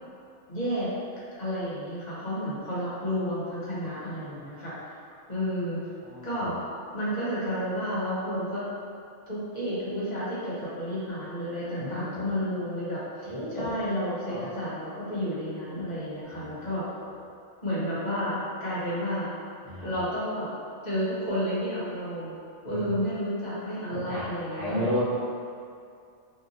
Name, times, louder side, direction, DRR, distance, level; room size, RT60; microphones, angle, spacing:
voice 1, 0.5-0.9 1.4-4.7 5.3-5.8 6.2-6.6 6.9-8.6 9.3-16.9 17.6-19.3 19.8-20.5 20.8-22.4 22.6-24.9, equal, 40° left, -10 dB, 1.0 m, -31 dB
voice 2, 6.0-6.4 11.8-12.3 13.2-13.7 14.2-14.5 16.3-16.6 17.0-17.1 19.6-19.9 22.6-22.9 23.9-24.2 24.5-25.0, equal, 25° right, -15 dB, 0.9 m, -33 dB
2.8 x 2.2 x 3.9 m, 2.4 s
omnidirectional pair, 1.3 m